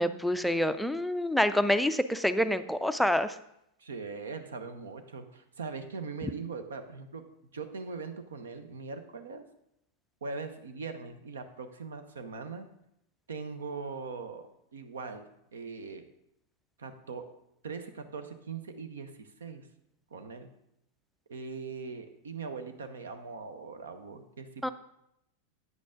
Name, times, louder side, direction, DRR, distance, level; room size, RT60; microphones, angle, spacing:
voice 1, 0.0-3.3 24.6-24.7, left 1 dB, ahead, 11 dB, 0.4 m, -27 dB
voice 2, 3.8-7.3 7.5-9.4 10.2-12.7 13.3-14.5 14.7-16.1 16.8-17.3 17.6-19.7 20.1-20.5 21.3-24.7, right 4 dB, 65° right, 9 dB, 0.8 m, -41 dB
9.3 x 8.4 x 3.7 m, 0.78 s
figure-of-eight pair, 90°, 0 cm